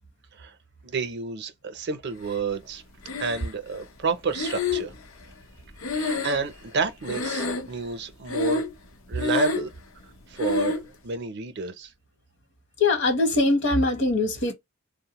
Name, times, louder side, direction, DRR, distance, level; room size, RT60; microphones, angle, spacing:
voice 1, 0.8-2.8 3.2-4.9 5.9-8.7 9.1-9.7 10.3-11.9, right 4 dB, 55° right, 0.5 m, -30 dB
Breathing, 3.0-3.8 4.3-6.8 7.0-7.9 8.2-8.8 9.1-9.8 10.4-10.9, left 3 dB, 85° left, 0.7 m, -28 dB
voice 2, 12.8-14.5, left 2 dB, 60° left, 1.0 m, -22 dB
3.6 x 2.0 x 2.9 m
head